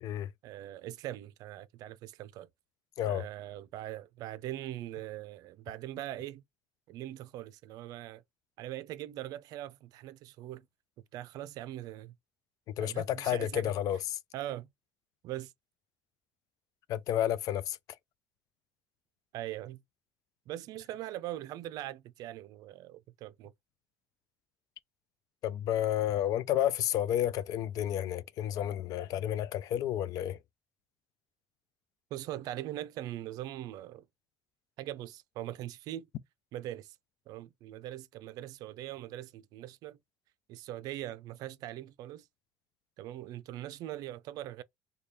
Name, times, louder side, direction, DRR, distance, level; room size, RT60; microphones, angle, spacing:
voice 1, 0.4-2.5 3.0-6.4 6.9-8.2 8.6-10.6 11.1-12.1 12.8-13.7 14.3-14.7 15.2-15.5 19.3-19.8 20.5-23.5 32.1-34.0 34.8-36.1 36.5-36.9 37.3-40.0 40.5-42.2 43.0-44.6, right 13 dB, 70° right, 0.4 m, -41 dB
voice 2, 12.8-14.2 16.9-17.8 25.4-30.4, left 11 dB, 60° left, 0.4 m, -31 dB
3.3 x 2.3 x 4.1 m
supercardioid pair, 95°, 7 cm